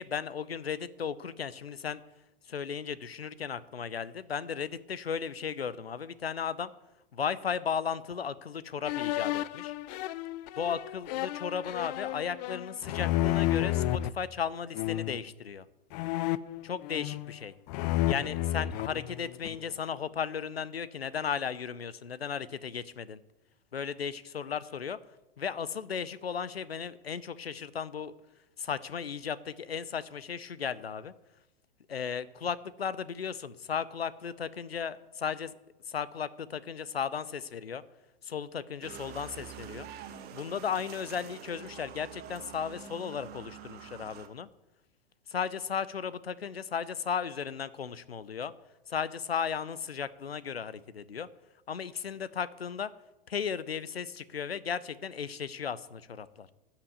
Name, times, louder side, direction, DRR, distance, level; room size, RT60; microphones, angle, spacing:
voice 1, 0.0-2.0 2.5-6.7 7.1-9.7 10.6-15.6 16.6-17.5 18.1-23.2 23.7-25.0 25.4-28.1 28.6-31.1 31.9-35.5 35.9-37.8 38.2-39.9 40.3-44.5 45.3-48.5 48.9-51.3 51.7-52.9 53.3-56.5, left 7 dB, 90° left, 18 dB, 0.7 m, -35 dB
sound 1, 8.8-14.1 14.7-15.3 15.9-17.4 17.7-19.7, left 14 dB, 45° left, 0.5 m, -31 dB
sound 2, 38.8-44.3, right 8 dB, 35° right, 1.3 m, -46 dB
13.0 x 5.9 x 8.0 m, 0.99 s
hypercardioid pair, 100°, 30 cm